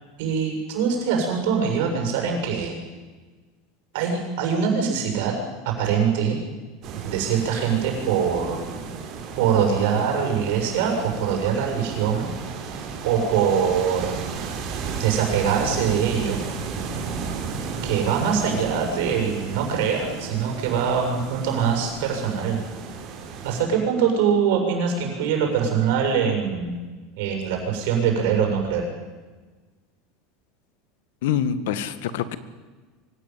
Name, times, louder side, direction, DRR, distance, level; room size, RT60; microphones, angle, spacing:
voice 1, 0.2-2.8 3.9-5.3 5.7-6.4 7.0-8.6 9.4-12.3 13.0-14.2 15.0-16.4 17.8-22.6 23.4-26.7 27.2-28.8, right 7 dB, 60° right, 3 dB, 7.1 m, -23 dB
sound 1, 6.8-23.6, right 5 dB, 35° right, 4.2 m, -34 dB
voice 2, 31.2-32.4, left 9 dB, 75° left, 14 dB, 1.9 m, -25 dB
24.5 x 17.5 x 9.4 m, 1.3 s
supercardioid pair, 175°, 0 cm